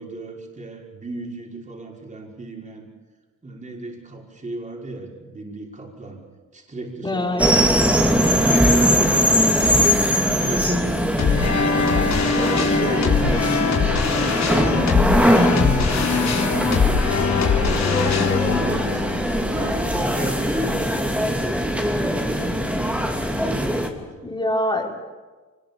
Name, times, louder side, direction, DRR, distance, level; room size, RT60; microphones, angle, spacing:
voice 1, 0.0-2.9 3.4-6.2 6.5-7.4 8.1-9.9 10.4-11.9 12.4-16.8 17.3-24.3, right 2 dB, 25° right, -1 dB, 5.5 m, -34 dB
voice 2, 7.0-7.7 17.7-18.1 24.2-25.0, left 1 dB, 15° left, 2 dB, 4.1 m, -25 dB
sound 1, 7.4-23.9, equal, 5° right, 2.9 m, -21 dB
sound 2, 11.2-20.3, left 5 dB, 65° left, 3.6 m, -22 dB
24.5 x 21.0 x 7.1 m, 1.3 s
cardioid pair, 90°, 30 cm